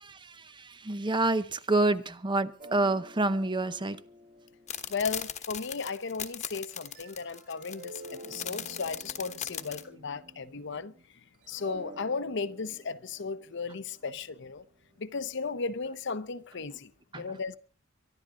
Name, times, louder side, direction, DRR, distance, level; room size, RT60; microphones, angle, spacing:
voice 1, 0.0-4.0 17.1-17.2, right 2 dB, 25° right, 0.7 m, -28 dB
sound 1, 2.6-5.8 6.7-11.0 11.3-15.5, right 2 dB, 40° right, 2.4 m, -50 dB
sound 2, 4.7-9.8, left 9 dB, 35° left, 1.2 m, -38 dB
voice 2, 4.9-8.0 8.3-10.9 11.5-14.6 15.0-17.5, left 4 dB, 60° left, 0.8 m, -35 dB
24.0 x 11.5 x 3.7 m
head